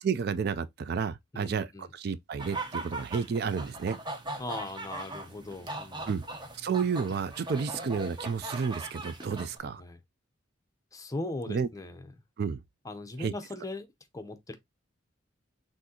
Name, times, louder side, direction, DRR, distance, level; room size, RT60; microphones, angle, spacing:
voice 1, 0.0-4.0 6.1-6.2 6.5-9.8 11.5-11.7 12.4-12.6 13.2-13.3, right 6 dB, 55° right, 0.3 m, -31 dB
voice 2, 1.3-1.9 4.4-6.1 9.8-10.0 10.9-12.1 12.8-13.9 14.1-14.6, left 2 dB, 20° left, 0.6 m, -39 dB
sound 1, 2.4-9.6, right 2 dB, 25° right, 0.8 m, -40 dB
6.1 x 2.6 x 2.7 m
head